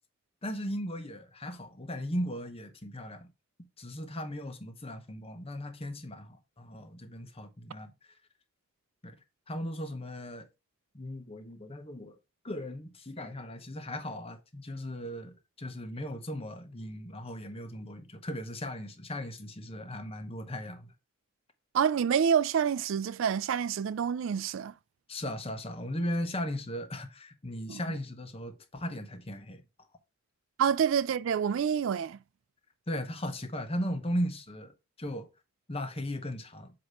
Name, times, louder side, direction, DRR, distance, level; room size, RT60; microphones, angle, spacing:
voice 1, 0.4-3.3 3.8-7.9 9.0-9.1 9.5-10.5 10.9-12.2 12.4-20.9 25.1-29.6 32.9-35.3 35.7-36.7, equal, 25° left, 1.0 m, -37 dB
voice 2, 21.7-24.7 27.7-27.8 30.6-32.2, right 7 dB, 60° right, 0.3 m, -27 dB
8.1 x 2.9 x 5.7 m
head